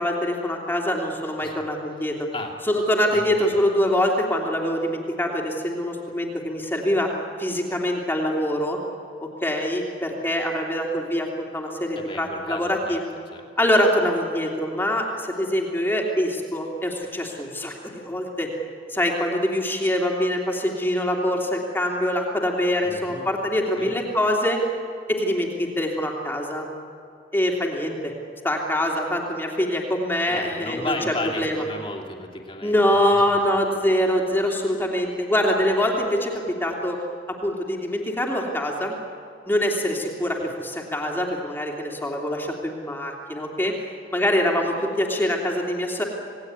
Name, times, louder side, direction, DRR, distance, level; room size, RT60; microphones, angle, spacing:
voice 1, 0.0-2.3 2.7-7.1 7.4-8.8 9.2-11.3 11.5-13.0 13.6-18.5 18.9-24.7 25.1-26.7 27.3-28.1 28.4-31.0 31.4-31.5 32.6-37.0 37.3-38.9 39.5-43.7 44.1-46.0, left 1 dB, 10° left, 0 dB, 3.0 m, -24 dB
voice 2, 3.1-3.6 12.0-13.0 13.3-13.5 22.8-23.3 23.8-24.0 30.3-33.4 40.2-40.5, left 2 dB, 30° left, 1 dB, 2.9 m, -34 dB
27.5 x 18.5 x 9.5 m, 2.6 s
head